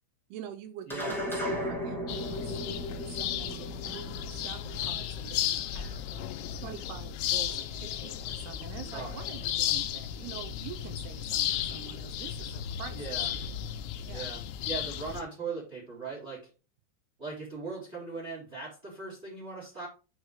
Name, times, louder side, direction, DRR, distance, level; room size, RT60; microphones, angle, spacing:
voice 1, 0.3-6.0 6.5-13.4 14.1-14.3, right 10 dB, 80° right, 7 dB, 2.4 m, -45 dB
sound 1, 0.9-5.5, left 1 dB, ahead, 0.8 m, -36 dB
voice 2, 0.9-1.2 8.9-9.1 12.9-13.3 14.1-16.5 17.2-19.9, right 4 dB, 15° right, -3 dB, 2.9 m, -39 dB
sound 2, 2.1-15.2, left 10 dB, 85° left, 3.2 m, -34 dB
sound 3, 12.1-14.1, left 5 dB, 50° left, 2.4 m, -45 dB
6.5 x 6.0 x 4.7 m, 0.33 s
omnidirectional pair, 5.3 m